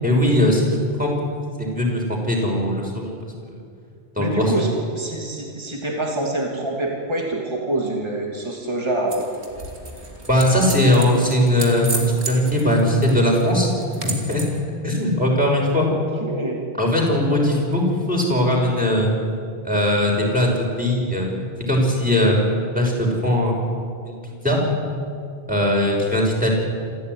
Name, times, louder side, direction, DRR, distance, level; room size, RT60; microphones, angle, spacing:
voice 1, 0.0-0.7 1.0-1.1 1.6-3.2 3.4-3.6 4.2-4.6 10.3-13.7 14.0-14.4 14.8-15.9 16.8-17.8 18.1-19.1 19.6-21.3 21.7-22.4 22.7-23.6 24.1-24.6 25.5-26.5, left 1 dB, 5° right, -2 dB, 5.7 m, -19 dB
voice 2, 4.2-9.3 15.9-16.6, right 2 dB, 25° right, 0 dB, 2.9 m, -26 dB
sound 1, 9.1-14.6, right 3 dB, 80° right, 3.1 m, -34 dB
27.0 x 14.0 x 9.6 m, 2.3 s
omnidirectional pair, 1.1 m